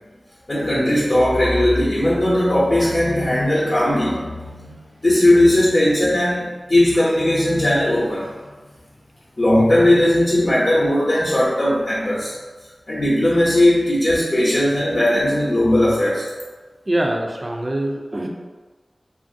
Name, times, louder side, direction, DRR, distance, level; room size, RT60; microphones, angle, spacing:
voice 1, 0.5-8.3 9.4-12.3 12.9-16.3, left 1 dB, 50° left, -7 dB, 0.6 m, -18 dB
voice 2, 16.9-18.3, right 1 dB, 35° right, 1 dB, 0.4 m, -23 dB
3.0 x 2.5 x 2.5 m, 1.3 s
wide cardioid pair, 60°, 0 cm